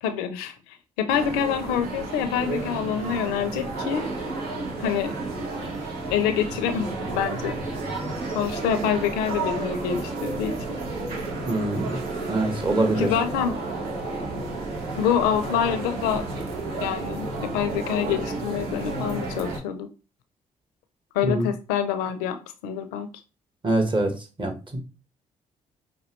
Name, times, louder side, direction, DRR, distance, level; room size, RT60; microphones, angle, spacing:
voice 1, 0.0-4.1 4.8-5.1 6.1-7.6 8.3-10.6 13.0-13.6 15.0-16.3 16.8-19.9 21.1-23.1, left 8 dB, 85° left, 0.5 m, -26 dB
sound 1, 1.1-19.6, right 2 dB, 75° right, 1.3 m, -31 dB
voice 2, 11.5-12.0 12.3-13.1 21.2-21.5 23.6-24.1 24.4-24.8, right 2 dB, 30° right, 1.4 m, -24 dB
5.2 x 2.6 x 3.0 m
hypercardioid pair, 50°, 16 cm